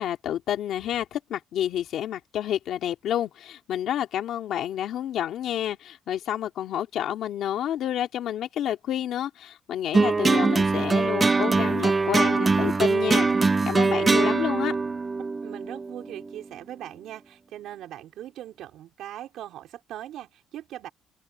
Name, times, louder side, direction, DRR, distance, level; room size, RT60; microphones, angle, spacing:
voice 1, 0.0-14.7, left 11 dB, 70° left, 2.5 m, -29 dB
sound 1, 9.9-16.4, right 3 dB, 20° right, 0.7 m, -22 dB
voice 2, 15.4-20.9, right 12 dB, 80° right, 4.8 m, -40 dB
open air
cardioid pair, 140°, 0 cm